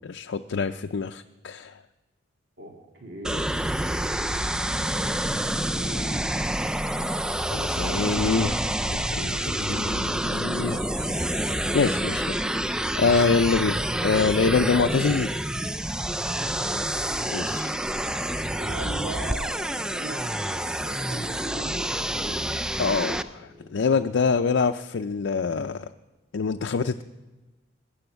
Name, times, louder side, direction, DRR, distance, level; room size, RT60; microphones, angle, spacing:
voice 1, 0.0-1.8 7.5-8.6 8.9-10.8 11.7-12.4 12.9-15.3 17.3-17.7 22.8-25.8 26.3-27.0, left 4 dB, 85° left, 7 dB, 0.5 m, -25 dB
voice 2, 2.6-3.7 5.7-6.3 16.2-16.4 18.6-22.5, right 2 dB, 70° right, -2 dB, 2.3 m, -40 dB
sound 1, 3.2-23.2, right 1 dB, 5° right, 0.4 m, -28 dB
sound 2, 18.5-24.1, left 2 dB, 30° right, 6.1 m, -53 dB
20.5 x 7.1 x 8.0 m, 1.2 s
head